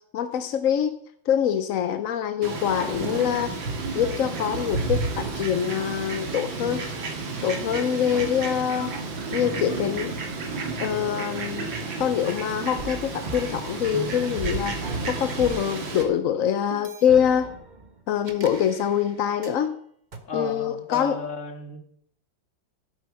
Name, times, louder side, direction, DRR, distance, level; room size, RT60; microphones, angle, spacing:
voice 1, 0.1-0.9 1.3-3.5 3.9-6.8 7.4-8.9 9.3-10.1 10.8-11.7 12.0-17.5 18.1-19.7 20.3-21.2, left 9 dB, 60° left, 10 dB, 0.9 m, -24 dB
Fowl, 2.4-16.0, right 3 dB, 90° right, 2.8 m, -31 dB
sound 1, 8.8-12.3 12.8-15.8 16.7-19.6 20.1-20.2, right 2 dB, 30° right, 1.2 m, -41 dB
voice 2, 20.2-21.8, left 4 dB, 40° left, 5 dB, 2.2 m, -34 dB
12.5 x 10.0 x 6.5 m, 0.66 s
omnidirectional pair, 2.0 m